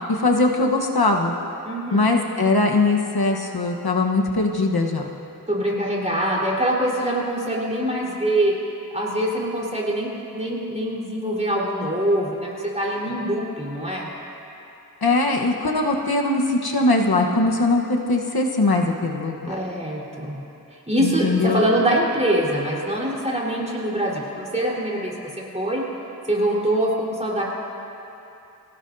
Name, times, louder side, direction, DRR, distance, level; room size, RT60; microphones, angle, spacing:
voice 1, 0.1-1.3 1.9-5.1 15.0-19.5 21.0-21.6, left 2 dB, 75° left, 1 dB, 1.2 m, -21 dB
voice 2, 1.6-2.0 5.5-8.5 8.9-14.1 19.5-20.4 20.9-25.1 25.5-25.8 26.3-27.4, right 1 dB, 20° right, -5 dB, 4.0 m, -24 dB
26.0 x 16.5 x 2.7 m, 2.8 s
wide cardioid pair, 45°, 37 cm